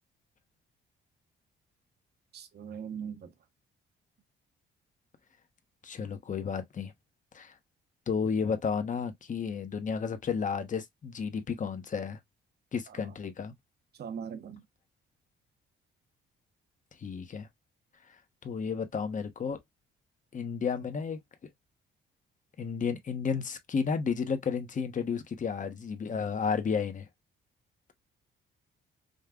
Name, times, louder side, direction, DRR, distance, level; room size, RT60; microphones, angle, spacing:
voice 1, 2.3-3.3 12.9-13.2 13.9-14.6, right 7 dB, 55° right, 0.9 m, -41 dB
voice 2, 5.8-6.9 7.3-7.5 8.1-12.2 12.7-13.5 17.0-17.5 18.4-19.6 20.3-21.2 22.6-27.1, left 6 dB, 40° left, 1.1 m, -32 dB
5.3 x 2.2 x 3.8 m
cardioid pair, 90°, 20 cm